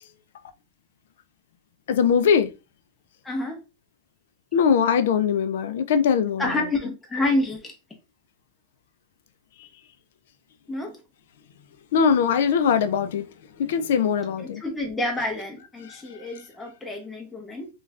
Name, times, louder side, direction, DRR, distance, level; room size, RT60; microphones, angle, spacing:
voice 1, 1.9-2.5 4.5-6.5 11.9-13.3 13.6-14.6, left 7 dB, 75° left, 0.4 m, -21 dB
voice 2, 3.2-3.6 6.4-7.6 10.7-10.9 14.4-17.7, left 2 dB, 10° left, 0.6 m, -28 dB
2.4 x 2.3 x 3.2 m
supercardioid pair, 140°, 0 cm